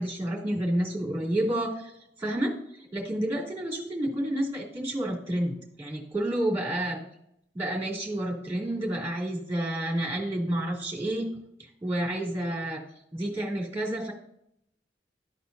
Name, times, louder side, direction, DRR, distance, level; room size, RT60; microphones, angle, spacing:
voice 1, 0.0-1.9 2.2-7.0 7.5-11.3 11.8-12.8 13.1-14.1, right 1 dB, 15° right, -3 dB, 2.6 m, -30 dB
12.5 x 4.3 x 2.7 m, 0.73 s
head